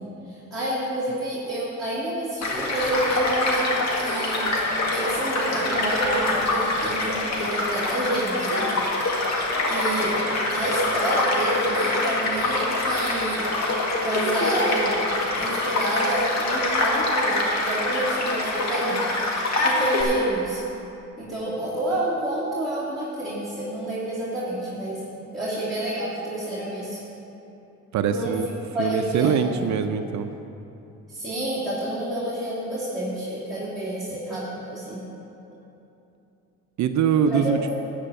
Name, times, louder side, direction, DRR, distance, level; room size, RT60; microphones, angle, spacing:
voice 1, 0.0-4.5 4.9-8.7 9.7-10.2 10.5-13.5 13.9-15.1 15.3-19.0 19.6-20.6 21.2-25.0 25.3-27.0 28.1-28.4 28.7-29.7 31.1-35.0 37.3-37.5, right 1 dB, ahead, -11 dB, 2.7 m, -29 dB
Child speech kid speaking / Stream / Car passing by, 2.4-20.0, left 2 dB, 65° left, 2.0 m, -25 dB
voice 2, 27.9-28.5 28.8-30.3 36.8-37.7, right 7 dB, 70° right, 8 dB, 0.6 m, -23 dB
12.0 x 5.2 x 8.8 m, 2.8 s
cardioid pair, 90°, 30 cm